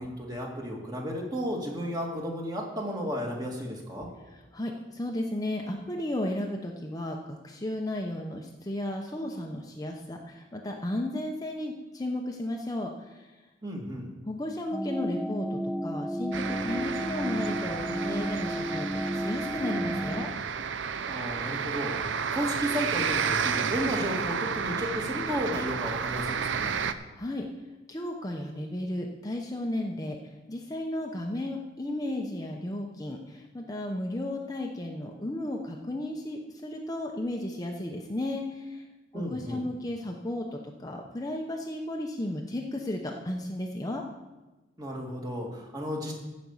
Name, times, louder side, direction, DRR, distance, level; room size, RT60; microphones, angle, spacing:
voice 1, 0.0-4.1 13.6-14.1 21.1-21.9 22.3-26.7 39.1-39.6 44.8-46.1, equal, 20° right, -1 dB, 2.1 m, -33 dB
voice 2, 4.3-13.3 14.3-20.3 27.2-27.5 27.9-30.2 30.5-38.8 39.1-44.0, left 1 dB, 20° left, 1 dB, 0.9 m, -34 dB
sound 1, 14.7-20.3, equal, ahead, 0.3 m, -32 dB
sound 2, 16.3-26.9, right 6 dB, 80° right, 0.6 m, -31 dB
15.0 x 5.3 x 7.2 m, 1.1 s
head